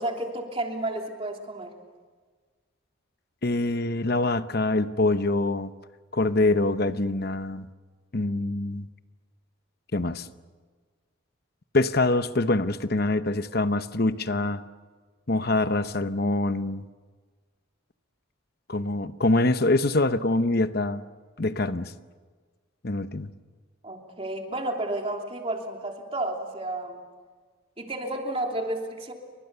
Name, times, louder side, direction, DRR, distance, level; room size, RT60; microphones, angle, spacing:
voice 1, 0.0-1.7 23.8-27.0 27.8-29.1, right 1 dB, 25° right, 2 dB, 3.1 m, -31 dB
voice 2, 3.4-5.7 6.1-7.7 8.1-8.9 9.9-10.3 11.7-14.6 15.3-16.8 18.7-21.0 21.4-21.9 22.8-23.3, left 2 dB, 45° left, 11 dB, 0.9 m, -25 dB
30.0 x 24.5 x 6.9 m, 1.5 s
head